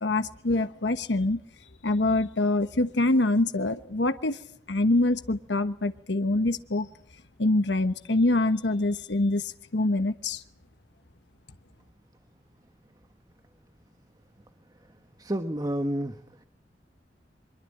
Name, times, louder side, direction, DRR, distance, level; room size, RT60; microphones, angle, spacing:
voice 1, 0.0-1.4 1.8-4.4 4.7-6.9 7.4-10.4, left 2 dB, 80° left, 1.1 m, -25 dB
voice 2, 15.2-16.5, right 1 dB, 20° right, 1.3 m, -30 dB
24.0 x 22.0 x 8.8 m
head